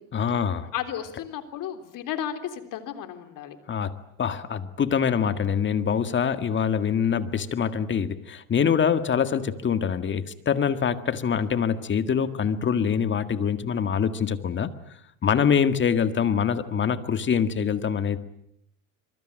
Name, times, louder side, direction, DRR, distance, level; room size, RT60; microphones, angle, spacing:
voice 1, 0.1-0.7 3.7-3.9 4.2-14.7 15.2-18.2, left 7 dB, 30° left, 10 dB, 1.9 m, -24 dB
voice 2, 0.7-3.6 15.2-15.5, left 10 dB, 55° left, 8 dB, 3.5 m, -34 dB
25.5 x 23.5 x 9.0 m, 0.73 s
cardioid pair, 125°, 37 cm